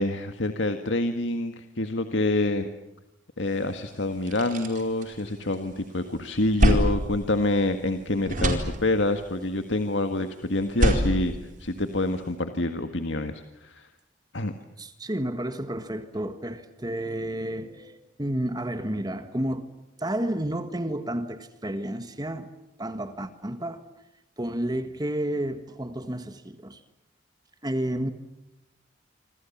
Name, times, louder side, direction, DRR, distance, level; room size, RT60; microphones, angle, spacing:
voice 1, 0.0-2.7 3.4-11.3 11.6-13.3 13.6-13.9 14.3-14.5, left 2 dB, 75° left, 7 dB, 1.8 m, -27 dB
sound 1, 3.6-3.7 4.1-5.7 6.1-8.0 8.2-9.3 10.6-12.2, equal, 45° right, 4.5 m, -26 dB
voice 2, 14.8-19.6 20.0-22.5 22.8-23.8 24.4-26.8 27.6-28.1, right 1 dB, 20° right, 9 dB, 1.6 m, -31 dB
27.5 x 26.5 x 7.3 m, 0.90 s
head